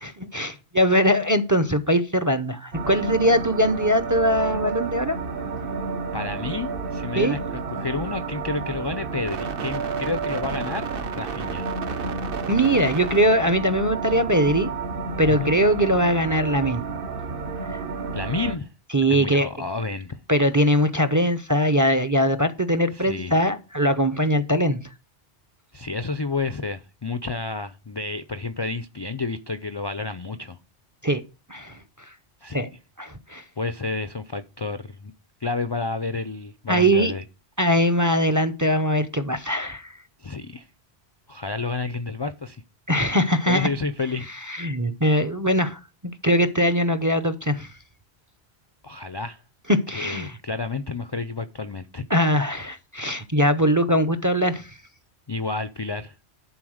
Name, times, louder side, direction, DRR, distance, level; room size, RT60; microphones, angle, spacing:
voice 1, 0.0-5.2 7.2-7.3 12.5-14.7 15.2-16.8 17.7-17.8 18.9-19.5 20.3-24.8 31.0-31.2 31.5-32.1 32.5-32.7 33.0-33.4 36.7-37.1 37.6-39.9 42.9-43.7 44.5-47.7 49.7-50.4 52.1-54.8, equal, 20° right, 0.5 m, -21 dB
sound 1, 2.7-18.5, right 4 dB, 60° right, 1.0 m, -30 dB
voice 2, 6.1-11.7 15.3-15.6 18.1-18.7 19.1-20.2 22.9-23.4 25.7-30.6 32.4-32.6 33.6-35.1 35.4-37.2 40.2-40.7 41.3-42.6 43.5-44.3 48.8-49.4 49.9-52.1 55.3-56.1, left 3 dB, 35° left, 0.4 m, -30 dB
11.0 x 4.3 x 6.3 m
omnidirectional pair, 1.1 m